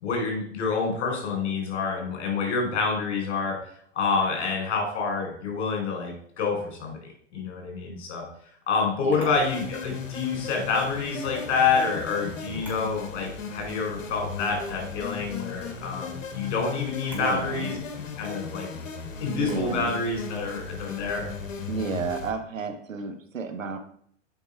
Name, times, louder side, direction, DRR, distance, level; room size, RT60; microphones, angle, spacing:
voice 1, 0.0-3.5 3.9-8.2 8.7-17.8 18.2-18.7 19.2-21.3, left 4 dB, 60° left, 1 dB, 4.1 m, -28 dB
voice 2, 9.0-9.4 17.1-17.7 19.3-20.0 21.7-23.8, right 4 dB, 85° right, 6 dB, 1.4 m, -32 dB
Camera, 9.1-9.4 11.1-11.5 12.4-12.9 13.3-13.4 14.5-14.9 16.9-17.3 19.4-19.7, right 1 dB, 5° right, 3.7 m, -47 dB
sound 1, 9.3-22.3, left 5 dB, 80° left, 1.5 m, -37 dB
8.1 x 5.4 x 4.9 m, 0.64 s
hypercardioid pair, 105°, 38 cm